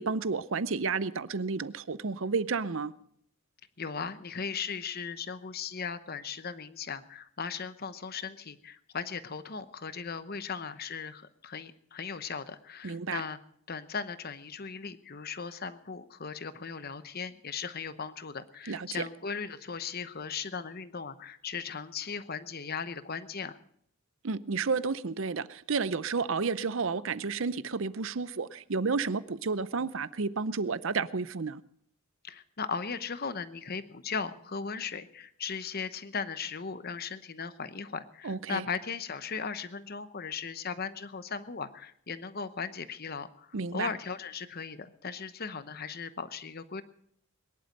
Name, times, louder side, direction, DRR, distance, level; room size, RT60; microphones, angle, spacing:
voice 1, 0.0-2.9 12.8-13.2 18.7-19.1 24.2-31.6 38.2-38.7 43.5-43.9, right 4 dB, 60° right, 0.6 m, -31 dB
voice 2, 3.8-13.4 13.7-23.6 32.2-46.8, left 5 dB, 45° left, 0.9 m, -37 dB
22.0 x 11.5 x 5.2 m
head